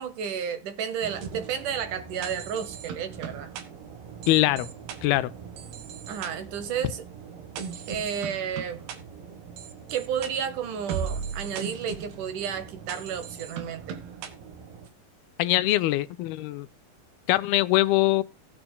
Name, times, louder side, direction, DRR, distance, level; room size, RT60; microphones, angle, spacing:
voice 1, 0.0-3.5 6.1-7.0 7.9-8.8 9.9-14.0, right 8 dB, 70° right, 2.2 m, -32 dB
sound 1, 1.0-14.9, right 7 dB, 85° right, 3.5 m, -39 dB
voice 2, 4.3-4.7 5.0-5.3 15.4-16.7 17.3-18.2, left 16 dB, 90° left, 2.6 m, -22 dB
18.0 x 8.9 x 2.2 m
omnidirectional pair, 4.3 m